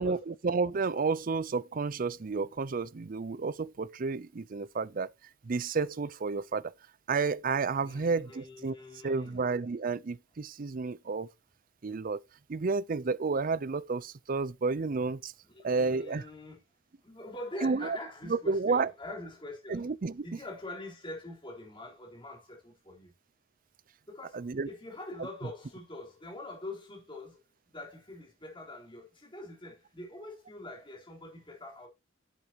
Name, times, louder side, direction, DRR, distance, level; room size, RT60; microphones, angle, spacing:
voice 1, 0.0-5.1 5.4-6.7 7.1-8.8 9.0-11.3 11.8-12.2 12.5-15.3 15.6-16.2 17.6-18.0 18.3-18.9 19.7-20.2 24.3-24.7, right 4 dB, 45° right, 0.5 m, -31 dB
voice 2, 7.8-9.4 15.6-16.6 17.0-19.9 20.2-23.1 24.1-27.4 27.7-31.9, left 2 dB, 25° left, 3.7 m, -44 dB
10.5 x 8.1 x 2.9 m
head